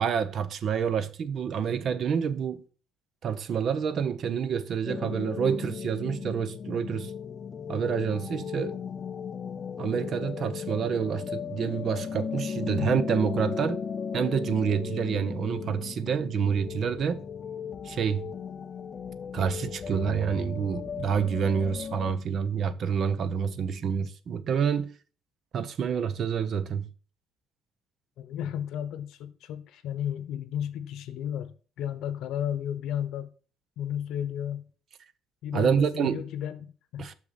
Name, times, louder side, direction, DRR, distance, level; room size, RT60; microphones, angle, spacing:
voice 1, 0.0-2.6 3.2-7.1 7.7-8.8 9.8-13.8 14.1-17.2 17.8-18.3 19.3-24.9 25.5-26.9 35.5-36.2 37.0-37.1, right 7 dB, 40° right, 0.6 m, -28 dB
sound 1, 4.9-22.1, left 6 dB, 25° left, 0.5 m, -36 dB
voice 2, 28.2-33.3 33.8-34.7 35.4-37.1, left 10 dB, 65° left, 0.9 m, -33 dB
6.4 x 6.0 x 4.1 m
cardioid pair, 160°, 0 cm